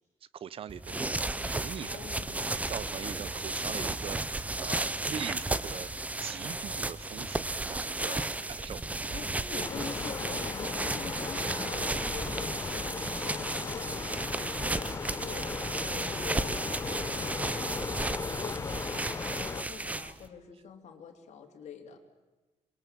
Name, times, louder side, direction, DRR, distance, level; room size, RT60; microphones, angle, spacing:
voice 1, 0.3-2.1 2.5-8.3 8.6-8.8, right 8 dB, 55° right, 19 dB, 0.7 m, -42 dB
sound 1, 0.7-20.3, right 2 dB, 10° right, 0.8 m, -34 dB
voice 2, 1.8-3.2 7.9-8.3 8.6-8.8 9.1-22.0, left 6 dB, 75° left, 4 dB, 3.1 m, -46 dB
sound 2, 5.2-5.9 6.3-11.6, right 3 dB, 80° right, 5.9 m, -51 dB
sound 3, 9.6-19.6, left 5 dB, 25° left, 0.8 m, -37 dB
27.0 x 22.5 x 7.5 m, 1.1 s
wide cardioid pair, 180°, 12 cm